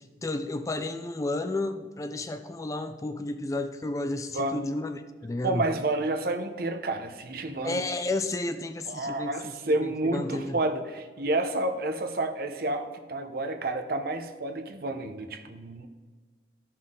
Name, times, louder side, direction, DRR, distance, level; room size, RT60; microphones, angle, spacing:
voice 1, 0.0-5.6 7.6-10.6, left 2 dB, 20° left, 9 dB, 0.3 m, -32 dB
voice 2, 5.4-7.8 8.9-15.9, right 2 dB, 55° right, 7 dB, 0.8 m, -30 dB
13.5 x 5.8 x 3.7 m, 1.5 s
head